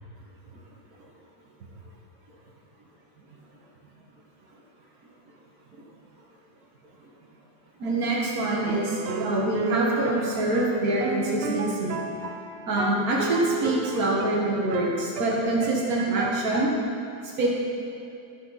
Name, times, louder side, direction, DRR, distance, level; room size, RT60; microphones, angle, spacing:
voice 1, 7.8-12.0 12.7-16.7 17.4-17.5, right 1 dB, 85° right, -4 dB, 1.8 m, -25 dB
sound 1, 8.7-16.8, right 6 dB, 60° right, 0.6 m, -33 dB
13.5 x 5.8 x 4.1 m, 2.7 s
omnidirectional pair, 1.5 m